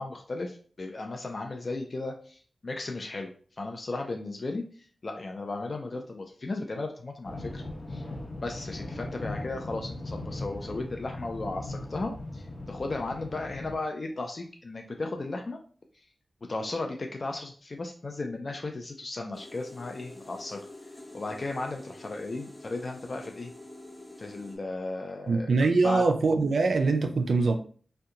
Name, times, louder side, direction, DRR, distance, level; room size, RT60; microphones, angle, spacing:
voice 1, 0.0-3.3 3.6-7.6 7.9-8.0 8.4-15.6 16.5-20.6 21.1-23.5 24.2-25.5 25.8-26.0, left 2 dB, 50° left, 0.4 m, -35 dB
sound 1, 7.2-13.8, left 2 dB, 75° left, 0.8 m, -39 dB
sound 2, 19.3-24.6, left 2 dB, 30° left, 0.8 m, -47 dB
voice 2, 25.3-27.6, right 3 dB, 85° right, 0.3 m, -23 dB
2.7 x 2.2 x 3.7 m
wide cardioid pair, 80°, 0 cm